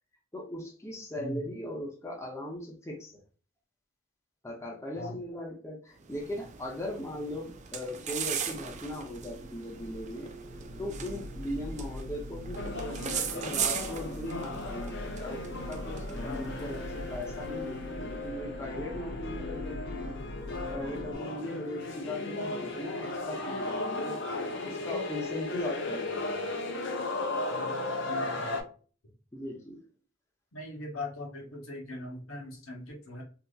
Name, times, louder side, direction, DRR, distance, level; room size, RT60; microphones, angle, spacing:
voice 1, 0.3-3.2 4.4-10.3 10.8-20.1 20.7-26.4 29.3-29.8, left 1 dB, 15° left, -1 dB, 0.7 m, -39 dB
voice 2, 1.2-1.5 5.0-5.2 28.1-28.6 30.5-33.2, left 1 dB, 90° left, 0 dB, 1.1 m, -40 dB
sound 1, 6.0-17.8, right 8 dB, 35° right, 0.4 m, -39 dB
sound 2, 7.6-21.1, left 1 dB, 80° right, 1.1 m, -43 dB
sound 3, 12.6-28.6, left 2 dB, 60° left, 0.7 m, -36 dB
3.4 x 2.8 x 2.4 m, 0.38 s
head